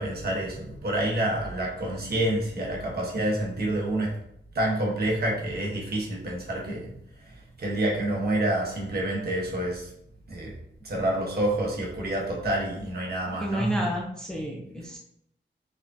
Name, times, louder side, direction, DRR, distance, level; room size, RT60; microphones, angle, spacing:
voice 1, 0.0-4.1 4.5-6.9 7.6-9.9 10.3-10.5 10.8-13.8, right 1 dB, 50° right, -2 dB, 1.1 m, -28 dB
voice 2, 13.4-15.0, equal, 5° left, -2 dB, 0.6 m, -30 dB
4.8 x 3.6 x 2.7 m, 0.75 s
wide cardioid pair, 175°, 20 cm